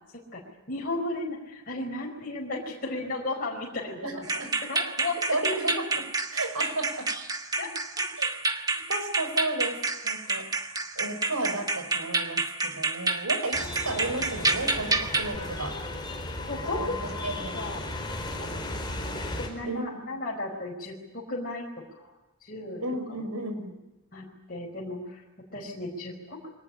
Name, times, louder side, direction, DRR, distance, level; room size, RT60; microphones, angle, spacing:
voice 1, 0.7-4.3 4.7-5.2 7.6-7.7 16.5-17.2 17.5-17.8 18.4-18.5 19.2-22.1 22.4-22.8 23.2-23.3 24.1-25.2 25.5-26.5, left 2 dB, 40° left, -2 dB, 4.9 m, -35 dB
voice 2, 4.0-4.5 5.3-6.0 6.3-7.1 8.2-8.3 8.7-9.8 10.0-10.5 11.0-13.6 13.8-15.7 16.7-17.6 19.6-20.0 22.8-23.7, right 2 dB, 80° right, 7 dB, 6.1 m, -33 dB
sound 1, 4.2-15.4, right 3 dB, 15° right, 1.4 m, -29 dB
sound 2, 13.5-19.5, left 2 dB, 20° left, 4.4 m, -35 dB
24.5 x 19.5 x 9.7 m, 1.1 s
head